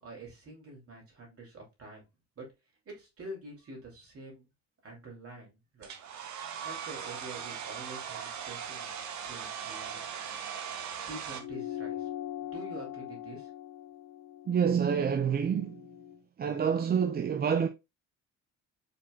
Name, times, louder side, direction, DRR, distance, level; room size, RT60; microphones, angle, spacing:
voice 1, 0.0-2.0 2.4-2.5 2.8-4.5 4.8-6.1 6.6-8.9 9.3-10.4 11.1-12.1 12.4-13.5, right 2 dB, 50° right, 2.9 m, -46 dB
Domestic sounds home sounds, 5.8-11.4, right 7 dB, 65° right, 1.0 m, -39 dB
sound 1, 11.4-16.2, left 12 dB, 65° left, 0.8 m, -41 dB
voice 2, 14.5-15.8 16.4-17.7, right 7 dB, 30° right, 0.5 m, -27 dB
5.0 x 4.4 x 2.3 m
cardioid pair, 90°, 30 cm